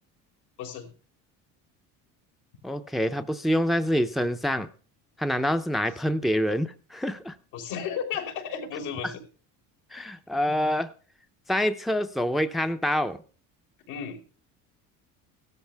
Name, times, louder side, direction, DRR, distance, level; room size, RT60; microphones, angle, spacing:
voice 1, 0.6-0.9 7.5-9.2 13.9-14.2, left 7 dB, 80° left, 2 dB, 4.7 m, -33 dB
voice 2, 2.6-4.7 5.2-7.4 9.0-9.1 9.9-10.9 11.5-13.2, equal, ahead, 9 dB, 0.7 m, -26 dB
16.5 x 13.0 x 3.4 m, 0.38 s
cardioid pair, 140°, 33 cm